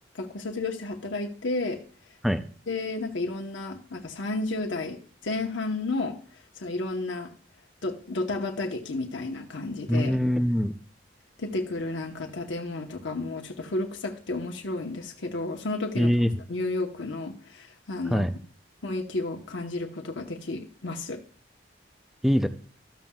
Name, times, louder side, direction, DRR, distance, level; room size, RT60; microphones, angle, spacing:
voice 1, 0.2-1.8 2.7-6.2 6.6-7.3 7.8-10.2 11.4-16.1 16.5-18.3 18.8-21.2, left 2 dB, 80° left, 2 dB, 1.0 m, -32 dB
voice 2, 9.9-10.8 16.0-16.3 18.1-18.3 22.2-22.5, equal, ahead, 8 dB, 0.5 m, -23 dB
13.5 x 7.4 x 2.3 m, 0.44 s
head